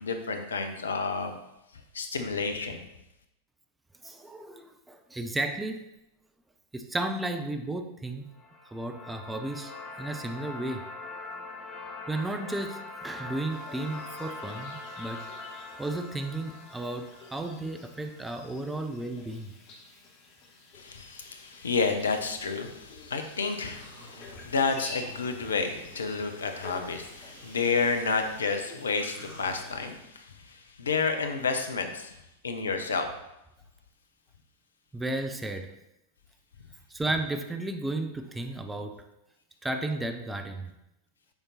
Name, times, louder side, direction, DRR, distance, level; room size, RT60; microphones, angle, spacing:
voice 1, 0.0-1.4 1.9-2.8 20.7-32.1 32.4-33.1, left 4 dB, 70° left, 6 dB, 0.8 m, -30 dB
voice 2, 4.0-5.9 6.7-8.3 8.7-9.7 10.0-10.9 12.1-15.3 15.7-19.5 34.9-35.7 36.9-39.1 39.6-40.7, right 2 dB, 10° right, 6 dB, 0.6 m, -33 dB
sound 1, 8.3-18.4, left 3 dB, 20° left, 1.0 m, -43 dB
sound 2, 13.5-29.7, left 3 dB, 40° left, 1.5 m, -50 dB
sound 3, 22.0-22.7 23.2-29.9, equal, 65° right, 2.7 m, -51 dB
7.0 x 5.2 x 4.2 m, 0.86 s
figure-of-eight pair, 90°, 0 cm